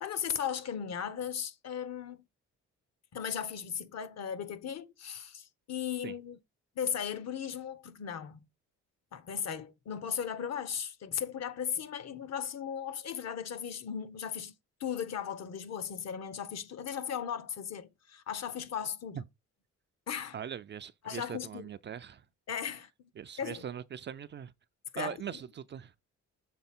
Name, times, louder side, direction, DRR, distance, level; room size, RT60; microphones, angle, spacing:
voice 1, 0.0-2.2 3.1-6.4 6.8-8.4 9.1-14.5 14.8-19.2 20.1-20.4 21.0-21.7 22.5-22.9 23.4-23.6 24.9-25.2, left 8 dB, 60° left, 0.9 m, -37 dB
voice 2, 20.3-22.2 23.2-24.5 25.0-25.9, right 8 dB, 40° right, 0.4 m, -41 dB
6.7 x 3.6 x 4.2 m
cardioid pair, 90°, 30 cm